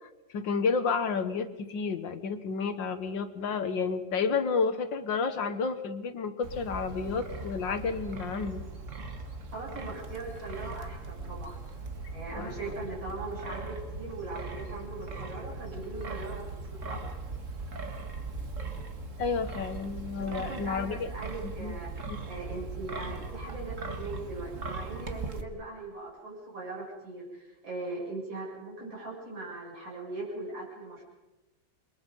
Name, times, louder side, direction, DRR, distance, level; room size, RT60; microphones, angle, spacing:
voice 1, 0.0-8.6 12.3-12.5 19.2-21.1 21.4-21.7 22.1-22.2, left 5 dB, 75° left, 9 dB, 2.0 m, -31 dB
Wind, 6.4-25.4, right 3 dB, 40° right, 2.0 m, -39 dB
voice 2, 9.5-11.6 12.1-17.0 20.2-31.0, right 2 dB, 80° right, -6 dB, 8.5 m, -40 dB
28.0 x 23.0 x 5.4 m, 1.1 s
omnidirectional pair, 2.1 m